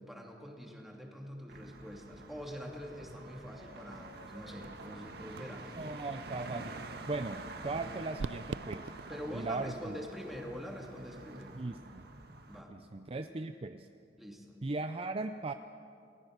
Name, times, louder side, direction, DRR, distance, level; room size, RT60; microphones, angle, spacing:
voice 1, 0.0-5.7 9.1-11.6 12.5-12.7 14.2-14.6, equal, ahead, 0 dB, 2.7 m, -45 dB
sound 1, 1.5-12.6, right 2 dB, 60° right, 1.7 m, -47 dB
sound 2, 2.5-10.7, equal, 45° left, 4.5 m, -60 dB
sound 3, 3.9-11.6, right 4 dB, 85° right, 0.5 m, -48 dB
voice 2, 5.8-6.8 7.1-8.9 9.3-10.0 11.5-12.1 12.7-13.9 14.6-15.5, right 3 dB, 30° right, 8 dB, 0.5 m, -38 dB
29.0 x 19.0 x 6.6 m, 2.6 s
head